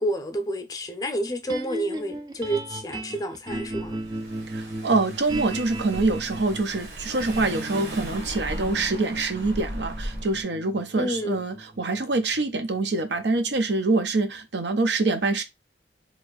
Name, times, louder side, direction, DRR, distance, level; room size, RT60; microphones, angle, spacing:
voice 1, 0.0-4.0 11.0-11.4, right 1 dB, 20° left, 0.6 m, -29 dB
sound 1, 1.5-13.8, right 1 dB, 20° right, 0.3 m, -36 dB
Car / Engine, 3.6-10.4, equal, 65° right, 1.3 m, -37 dB
voice 2, 4.5-15.4, right 3 dB, 80° right, 0.7 m, -25 dB
3.0 x 2.6 x 3.9 m
head